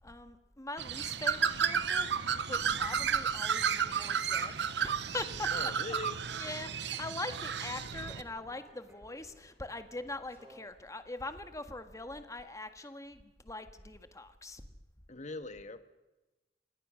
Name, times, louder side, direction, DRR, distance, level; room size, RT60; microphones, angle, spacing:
voice 1, 0.0-5.5 6.4-14.7, left 2 dB, 20° left, 8 dB, 1.6 m, -42 dB
Bird, 0.8-8.2, right 7 dB, 70° right, 1.0 m, -32 dB
sound 1, 3.7-10.9, right 1 dB, 10° right, 5.8 m, -60 dB
voice 2, 5.5-6.2 15.1-15.8, left 3 dB, 45° left, 10 dB, 1.5 m, -41 dB
27.0 x 18.5 x 6.4 m, 1.1 s
head